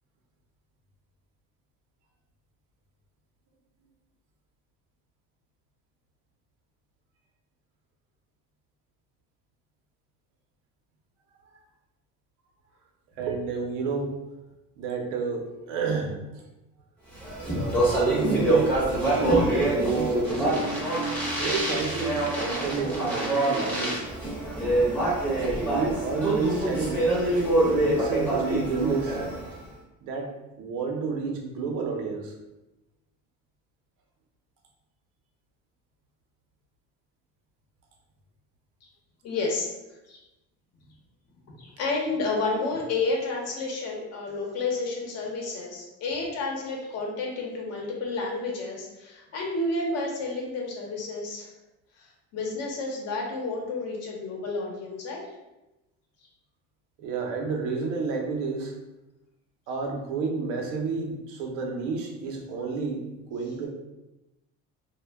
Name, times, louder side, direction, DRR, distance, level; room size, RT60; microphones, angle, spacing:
voice 1, 13.2-14.1 14.8-16.2 17.5-20.7 21.4-24.1 25.3-27.0 27.7-29.2 30.0-30.3 30.6-32.3 57.0-58.7 59.7-63.7, right 4 dB, 85° right, 1 dB, 0.6 m, -30 dB
Speech, 17.2-29.6, right 1 dB, 5° left, 0.7 m, -25 dB
sound 1, 20.3-27.3, right 2 dB, 30° left, 1.0 m, -40 dB
voice 2, 39.2-39.7 40.1-40.2 41.5-51.5 52.3-55.2, left 3 dB, 55° left, -1 dB, 0.8 m, -30 dB
2.1 x 2.1 x 3.3 m, 0.97 s
cardioid pair, 125°, 31 cm